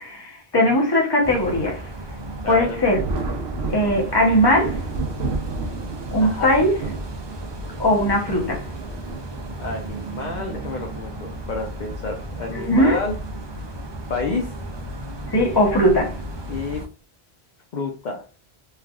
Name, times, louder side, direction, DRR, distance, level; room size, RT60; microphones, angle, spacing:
voice 1, 0.0-1.8 2.5-3.0 3.7-4.8 6.1-6.8 7.8-8.7 12.5-13.0 15.3-16.2, equal, 25° left, 0.8 m, -19 dB
sound 1, 1.2-16.9, right 1 dB, 40° right, 0.4 m, -34 dB
voice 2, 2.4-2.8 6.2-6.5 9.6-13.2 14.1-14.5 16.5-16.8 17.7-18.2, left 3 dB, 55° left, 0.6 m, -29 dB
Thunder, 2.9-10.0 11.0-11.1 12.5-12.8 13.2-13.3 15.2-15.4 16.1-16.5, right 3 dB, 85° right, 0.9 m, -32 dB
3.4 x 2.4 x 2.3 m
omnidirectional pair, 1.0 m